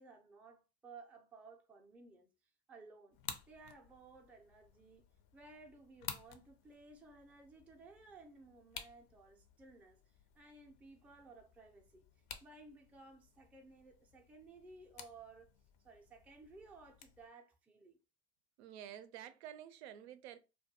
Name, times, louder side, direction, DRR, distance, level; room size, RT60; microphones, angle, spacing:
voice 1, 0.0-2.3 2.7-3.2 3.5-5.0 5.3-12.1 12.4-15.5 15.8-18.0, right 3 dB, 5° right, 0.4 m, -58 dB
sound 1, 3.1-17.3, left 8 dB, 60° left, 0.6 m, -54 dB
voice 2, 18.6-20.4, right 10 dB, 80° right, 0.5 m, -50 dB
2.2 x 2.2 x 2.7 m
hypercardioid pair, 90°, 32 cm